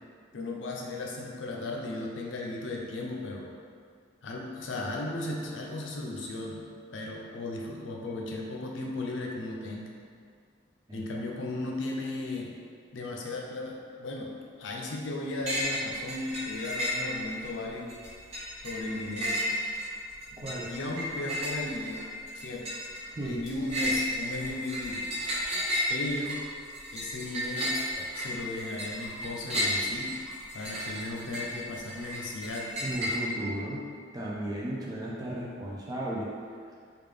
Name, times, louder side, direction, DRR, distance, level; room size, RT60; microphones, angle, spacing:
voice 1, 0.3-3.5 4.2-6.6 6.9-9.9 10.9-12.5 12.9-17.9 18.6-19.4 20.3-22.0 22.3-22.7 23.2-25.1 25.9-26.4 26.9-27.8 28.1-30.2 30.5-32.8, left 2 dB, 75° left, -1 dB, 0.5 m, -36 dB
sound 1, 15.5-17.5 17.9-33.1, equal, 35° right, 0.9 m, -33 dB
voice 2, 20.4-20.7 23.1-23.4 32.8-33.8 34.1-36.3, right 1 dB, 20° right, -5 dB, 0.4 m, -35 dB
3.5 x 2.4 x 3.3 m, 2.1 s
head